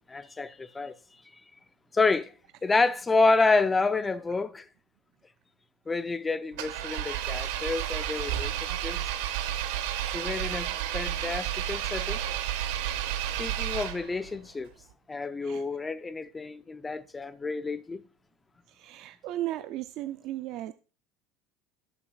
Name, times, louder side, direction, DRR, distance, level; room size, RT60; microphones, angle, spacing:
voice 1, 0.1-0.9 1.9-2.3 2.6-4.6 5.9-9.0 10.1-12.2 13.4-14.7 15.1-18.0, left 3 dB, 15° left, 0.5 m, -28 dB
Engine, 6.5-14.3, right 11 dB, 80° right, 1.0 m, -31 dB
voice 2, 18.8-20.7, right 14 dB, 50° right, 0.4 m, -36 dB
17.0 x 7.1 x 2.4 m
cardioid pair, 150°, 0 cm